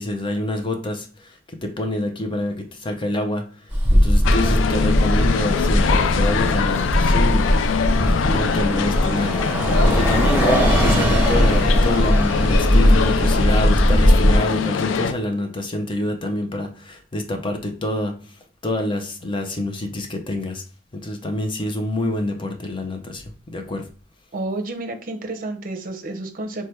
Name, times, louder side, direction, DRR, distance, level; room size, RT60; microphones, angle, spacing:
voice 1, 0.0-18.2 18.6-20.6 20.9-23.2 23.5-23.9, left 1 dB, 25° left, 5 dB, 0.6 m, -26 dB
Bus, 3.7-14.4, equal, 10° right, 1.0 m, -18 dB
sound 1, 4.2-15.1, left 6 dB, 80° left, 0.3 m, -23 dB
voice 2, 24.3-26.7, right 2 dB, 50° right, 5 dB, 0.6 m, -30 dB
3.2 x 2.2 x 4.3 m, 0.38 s
head